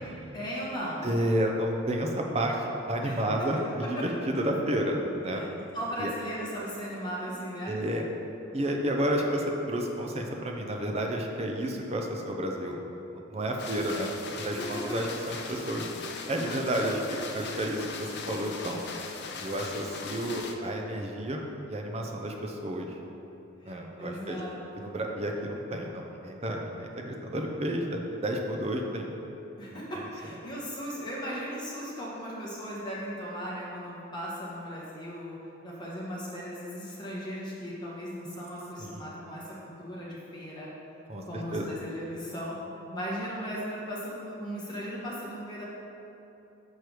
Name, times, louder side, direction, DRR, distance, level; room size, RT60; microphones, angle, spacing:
voice 1, 0.3-1.1 3.0-3.2 5.3-5.5 5.7-7.8 14.4-14.8 23.6-24.9 29.6-35.4 35.6-40.7 41.3-42.5 42.9-45.6, equal, 20° left, -6 dB, 1.2 m, -37 dB
voice 2, 1.0-3.6 3.9-5.4 6.0-6.1 7.7-8.0 8.5-12.8 13.1-15.9 16.3-17.0 17.3-18.8 19.4-22.9 23.6-24.4 24.7-29.1 38.8-39.1 41.1-41.7, right 1 dB, 30° right, 1 dB, 0.6 m, -31 dB
sound 1, 13.6-20.5, left 4 dB, 50° left, 0.5 m, -40 dB
6.4 x 4.6 x 4.8 m, 3.0 s
head